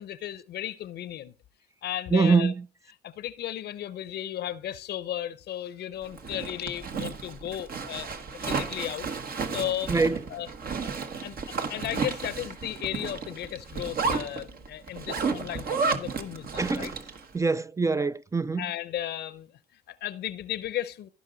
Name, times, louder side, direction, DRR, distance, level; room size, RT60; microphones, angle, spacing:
voice 1, 0.0-1.3 1.8-2.5 3.0-9.9 10.3-10.5 10.8-10.9 11.2-16.9 18.6-21.1, left 12 dB, 80° left, 0.7 m, -35 dB
voice 2, 2.1-2.6 9.9-10.2 16.6-16.9 17.3-18.7, right 4 dB, 20° right, 0.4 m, -24 dB
Zipper (clothing), 6.0-17.2, right 4 dB, 60° right, 1.3 m, -32 dB
15.5 x 5.4 x 3.9 m
cardioid pair, 70°, 17 cm